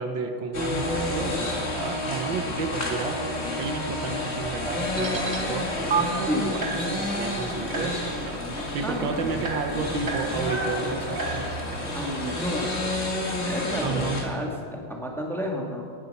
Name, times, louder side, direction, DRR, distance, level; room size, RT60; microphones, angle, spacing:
voice 1, 0.0-3.2 3.6-8.4 8.7-11.5 13.8-14.3, right 4 dB, 75° right, 5 dB, 1.8 m, -32 dB
sound 1, 0.5-14.2, left 1 dB, 35° left, 2.0 m, -30 dB
sound 2, 4.9-5.4 5.9-6.0 6.6-12.9, right 5 dB, 40° right, 1.0 m, -35 dB
voice 2, 8.8-9.3 11.9-12.7 13.4-15.9, equal, ahead, 0 dB, 1.6 m, -31 dB
18.5 x 10.0 x 5.4 m, 2.3 s
omnidirectional pair, 2.1 m